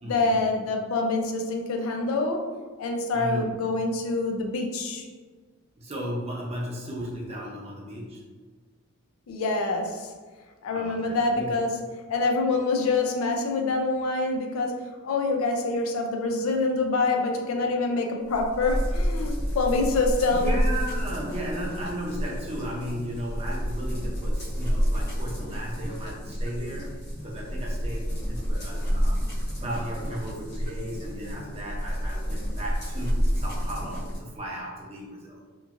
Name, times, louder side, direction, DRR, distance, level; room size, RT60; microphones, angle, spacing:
voice 1, 0.0-2.5 2.8-5.1 9.3-10.1 10.6-11.8 12.1-20.5, left 3 dB, 70° left, 3 dB, 0.4 m, -26 dB
voice 2, 3.1-3.5 5.8-8.2 10.7-11.5 20.4-29.2 29.6-35.4, equal, 30° right, -3 dB, 0.6 m, -35 dB
sound 1, 18.3-34.2, equal, 50° left, 0.9 m, -29 dB
2.9 x 2.5 x 2.4 m, 1.4 s
head